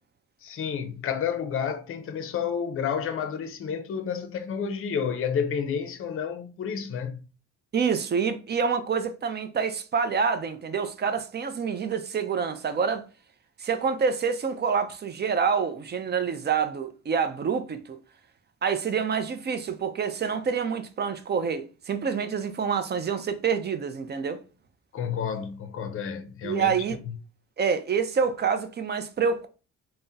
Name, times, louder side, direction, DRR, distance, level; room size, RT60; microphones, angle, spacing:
voice 1, 0.4-7.3 24.9-26.7, left 7 dB, 45° left, 0.5 m, -30 dB
voice 2, 7.7-13.0 13.6-18.0 18.6-24.4 26.4-27.0 27.6-29.5, right 6 dB, 35° right, 0.4 m, -27 dB
3.4 x 2.1 x 2.6 m
cardioid pair, 90°, 30 cm